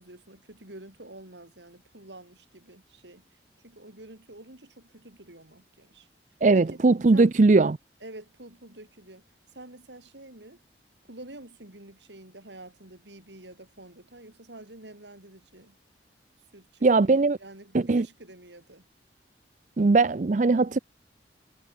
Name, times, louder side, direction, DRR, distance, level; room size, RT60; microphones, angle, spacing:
voice 1, 0.0-6.1 6.5-6.8 7.1-7.3 8.0-9.2 9.5-10.6 11.0-15.8 16.5-18.9, right 1 dB, 80° right, 5.2 m, -48 dB
voice 2, 6.4-7.8 16.8-17.4 17.7-18.0 19.8-20.8, right 3 dB, 45° right, 0.5 m, -20 dB
head